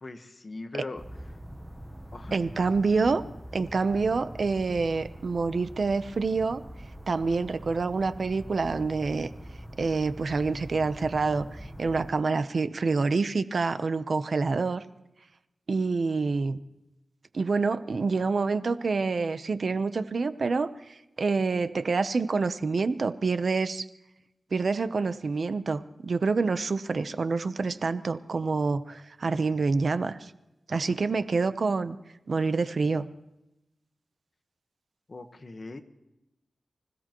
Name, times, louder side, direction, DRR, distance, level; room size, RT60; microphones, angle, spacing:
voice 1, 0.0-1.0 2.1-2.4 2.8-2.9 35.1-35.8, left 2 dB, 40° left, 7 dB, 1.3 m, -40 dB
sound 1, 1.0-12.1, equal, 5° right, 0.9 m, -44 dB
voice 2, 2.3-3.2 3.5-6.6 7.1-9.3 9.8-14.8 15.7-16.6 17.3-23.9 24.5-30.3 30.7-32.0 32.3-33.1, right 4 dB, 55° right, 12 dB, 0.7 m, -27 dB
25.5 x 16.5 x 3.1 m, 0.90 s
wide cardioid pair, 115°, 0 cm